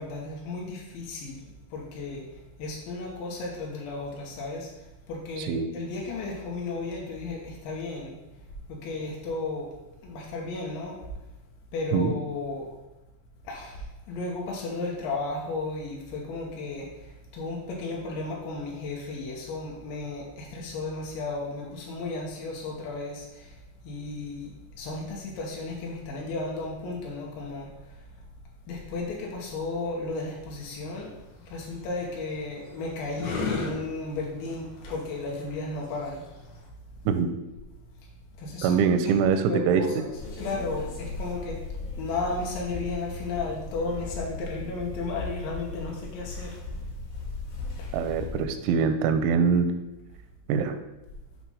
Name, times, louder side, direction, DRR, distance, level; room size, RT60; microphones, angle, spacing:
voice 1, 0.0-8.1 8.7-9.8 10.0-11.0 11.7-12.7 13.4-23.6 23.8-28.0 28.7-36.3 38.4-38.8 39.1-41.7 42.0-46.6 47.8-47.9, left 3 dB, 90° left, -2 dB, 2.0 m, -34 dB
voice 2, 5.4-5.7 11.9-12.1 37.1-37.3 38.6-39.8 47.9-49.7 50.5-50.7, right 6 dB, 85° right, 7 dB, 2.7 m, -23 dB
sound 1, 30.6-36.7, left 4 dB, 70° left, 2.4 m, -37 dB
sound 2, 40.1-48.5, left 3 dB, 50° left, 2.4 m, -37 dB
8.1 x 3.0 x 5.4 m, 1.0 s
omnidirectional pair, 5.6 m